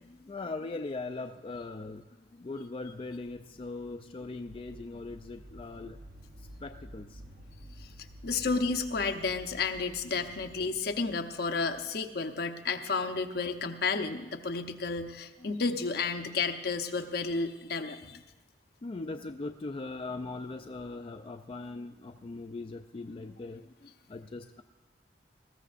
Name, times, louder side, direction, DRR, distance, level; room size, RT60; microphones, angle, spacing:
voice 1, 0.1-6.0 6.4-7.4 15.4-15.6 18.1-18.2 18.8-24.6, left 3 dB, 30° left, 5 dB, 0.4 m, -40 dB
sound 1, 3.2-12.4, equal, 75° right, 0.9 m, -51 dB
voice 2, 8.2-18.2, left 4 dB, 60° left, 5 dB, 0.8 m, -32 dB
20.0 x 14.5 x 2.5 m, 1.1 s
head